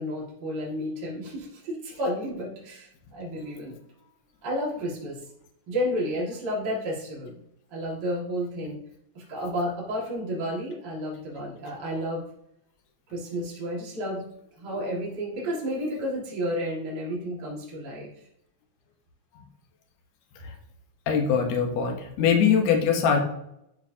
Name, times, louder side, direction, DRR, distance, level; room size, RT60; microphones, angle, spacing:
voice 1, 0.0-3.8 4.4-5.2 5.7-7.3 7.7-8.8 9.1-12.2 13.1-14.3 14.6-18.1, equal, 40° right, -5 dB, 2.3 m, -31 dB
voice 2, 21.1-23.2, left 7 dB, 65° left, 3 dB, 2.1 m, -22 dB
11.0 x 4.7 x 2.8 m, 0.79 s
omnidirectional pair, 3.5 m